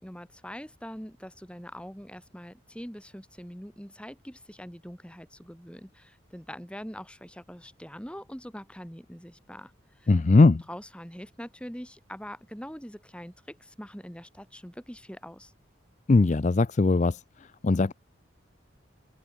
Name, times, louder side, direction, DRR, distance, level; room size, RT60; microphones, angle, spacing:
voice 1, 0.0-10.1 10.7-15.5, equal, 5° left, 5.3 m, -43 dB
voice 2, 10.1-10.6 16.1-17.2 17.6-17.9, left 3 dB, 35° left, 0.4 m, -20 dB
open air
head